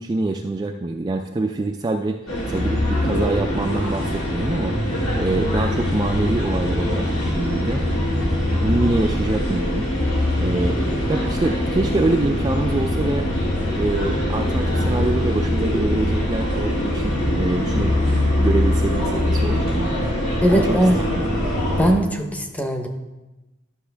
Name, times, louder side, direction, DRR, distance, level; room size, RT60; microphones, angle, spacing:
voice 1, 0.0-4.7 5.2-7.8 8.6-9.9 10.4-10.8 11.1-13.3 13.8-18.0 18.4-19.9 20.5-21.3, right 2 dB, 20° right, 4 dB, 0.3 m, -25 dB
sound 1, 2.3-21.9, left 1 dB, 90° left, 3.0 m, -22 dB
voice 2, 20.4-21.0 21.8-22.9, right 1 dB, 5° left, 4 dB, 0.7 m, -19 dB
11.5 x 6.2 x 3.4 m, 1.1 s
head